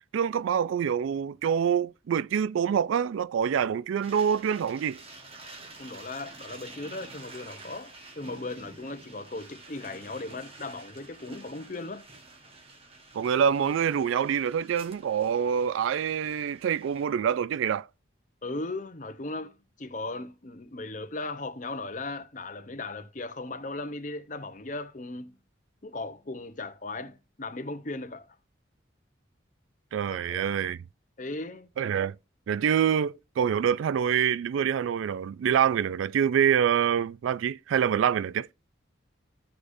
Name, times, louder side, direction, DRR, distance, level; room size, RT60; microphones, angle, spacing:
voice 1, 0.1-5.0 13.1-17.9 29.9-30.8 31.8-32.2 32.5-38.5, right 8 dB, 85° right, 0.3 m, -26 dB
sound 1, 4.0-17.1, right 2 dB, 30° right, 1.2 m, -49 dB
voice 2, 5.8-12.0 18.4-25.3 25.8-28.3 30.1-30.4 31.2-31.7, left 2 dB, 40° left, 0.7 m, -37 dB
14.5 x 4.9 x 2.6 m
head